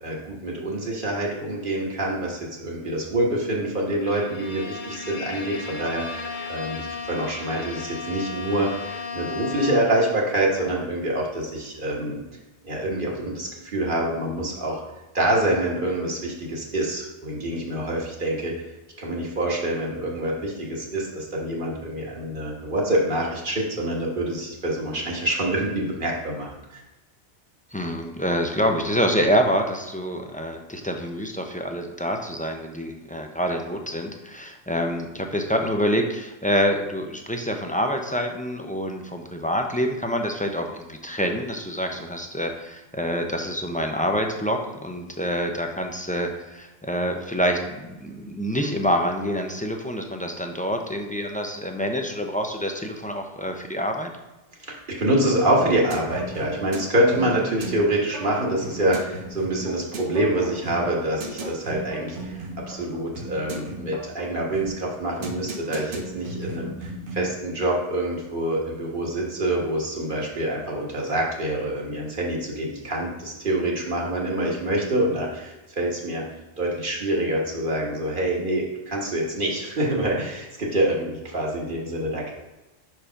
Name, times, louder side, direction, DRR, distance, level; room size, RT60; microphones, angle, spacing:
voice 1, 0.0-6.2 6.5-8.9 9.1-12.2 12.6-14.8 15.1-18.5 19.0-26.8 54.6-76.2 76.6-82.3, right 1 dB, 45° right, -2 dB, 1.6 m, -26 dB
Bowed string instrument, 4.0-10.1, left 4 dB, 50° left, 0.7 m, -35 dB
voice 2, 27.7-54.1, equal, 15° left, 3 dB, 0.3 m, -26 dB
sound 1, 55.6-67.4, right 1 dB, 75° right, 1.2 m, -36 dB
5.0 x 4.7 x 5.7 m, 1.0 s
omnidirectional pair, 1.2 m